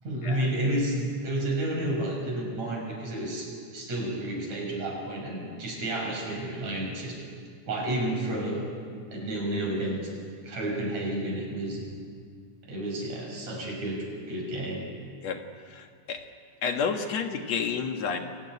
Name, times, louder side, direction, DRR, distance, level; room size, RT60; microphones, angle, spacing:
voice 1, 0.0-7.2 7.7-8.7 9.1-10.0 10.4-11.8 12.6-14.9, right 1 dB, 70° right, 0 dB, 7.4 m, -31 dB
voice 2, 15.7-16.2 16.6-18.2, left 6 dB, 65° left, 5 dB, 2.7 m, -30 dB
27.0 x 19.5 x 9.7 m, 2.1 s
omnidirectional pair, 3.3 m